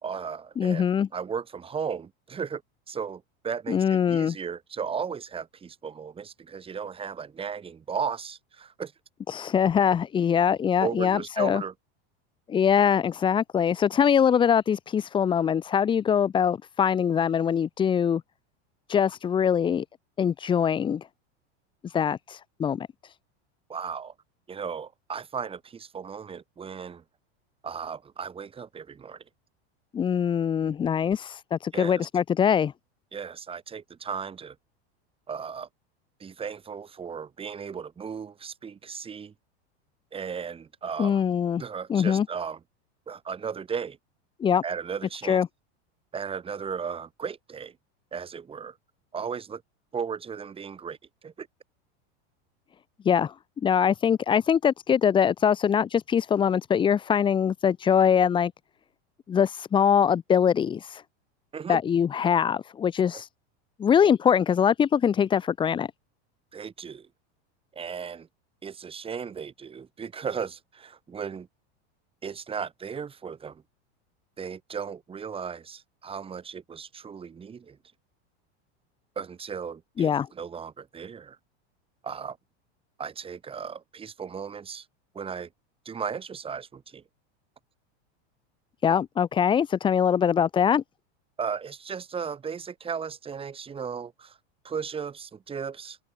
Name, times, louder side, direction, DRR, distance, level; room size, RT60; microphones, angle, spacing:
voice 1, 0.0-0.9 1.1-2.6 2.9-8.9 10.8-11.7 23.7-24.1 24.5-27.0 27.6-29.2 31.7-32.1 33.1-34.5 35.3-35.7 36.2-39.3 40.1-41.2 41.6-42.6 43.1-44.0 44.6-45.4 46.1-47.7 48.1-48.7 49.1-49.6 49.9-51.0 51.2-51.5 61.5-61.8 63.1-63.2 66.5-67.1 67.7-68.3 68.6-71.5 72.2-73.6 74.4-77.8 79.1-81.4 82.0-82.4 83.0-84.8 85.1-85.5 85.8-87.0 91.4-94.4 94.6-96.0, right 6 dB, 15° right, 3.1 m, -35 dB
voice 2, 0.6-1.1 3.7-4.4 9.3-11.6 12.5-18.2 18.9-19.8 20.2-21.0 21.8-23.1 29.9-32.7 41.0-41.6 41.9-42.3 44.4-44.6 45.2-45.5 53.0-53.3 53.6-58.5 59.3-61.0 61.7-63.3 63.8-65.9 80.0-80.3 88.8-90.8, left 8 dB, 15° left, 0.7 m, -23 dB
supercardioid pair, 155°, 33 cm